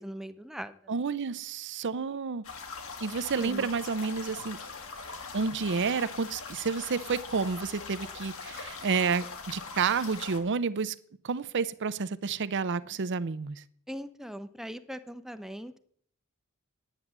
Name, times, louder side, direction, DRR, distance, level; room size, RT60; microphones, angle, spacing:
voice 1, 0.0-0.8 3.4-3.7 13.9-15.8, equal, ahead, 0.6 m, -40 dB
voice 2, 0.9-2.4 3.0-4.6 5.3-10.9 11.2-13.6, right 5 dB, 55° right, 0.6 m, -30 dB
sound 1, 2.4-10.4, left 4 dB, 65° left, 2.0 m, -42 dB
9.8 x 9.4 x 7.4 m
head